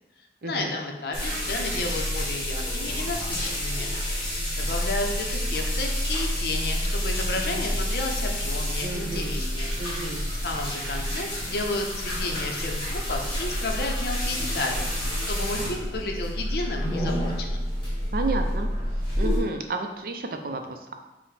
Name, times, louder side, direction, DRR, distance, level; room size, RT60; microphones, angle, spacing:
voice 1, 0.4-3.9 4.5-9.7 10.4-14.9 15.3-17.7, left 2 dB, 60° left, 2 dB, 0.5 m, -32 dB
sound 1, 1.1-19.4, equal, 30° left, 1.1 m, -28 dB
voice 2, 8.8-9.3 9.8-10.3 18.1-18.7 19.2-20.9, right 3 dB, 55° right, 5 dB, 0.4 m, -31 dB
5.6 x 2.1 x 3.2 m, 1.0 s
head